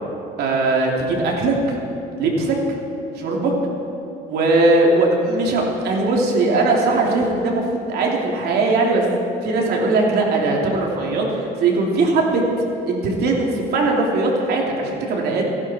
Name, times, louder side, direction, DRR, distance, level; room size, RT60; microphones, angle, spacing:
voice 1, 0.4-1.8 2.2-2.6 3.1-3.5 4.3-9.0 9.4-12.4 12.9-15.4, right 3 dB, 70° right, -1 dB, 3.2 m, -19 dB
26.5 x 11.0 x 4.5 m, 2.7 s
cardioid pair, 110°, 17 cm